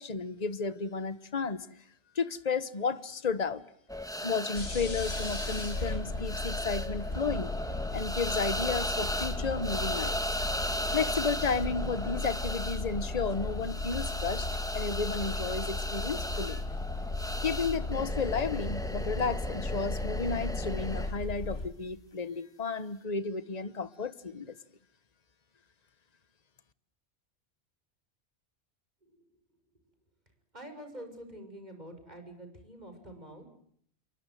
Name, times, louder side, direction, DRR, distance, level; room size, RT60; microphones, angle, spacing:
voice 1, 0.0-1.7 2.1-3.6 4.2-7.5 7.9-10.2 10.9-14.5 14.7-16.6 17.4-24.5, left 4 dB, 40° left, 1.3 m, -33 dB
sound 1, 3.9-21.1, equal, 5° left, 1.9 m, -36 dB
sound 2, 4.5-21.7, left 3 dB, 70° left, 3.3 m, -36 dB
voice 2, 30.5-33.6, right 1 dB, 40° right, 6.7 m, -46 dB
28.5 x 24.0 x 7.8 m
omnidirectional pair, 1.1 m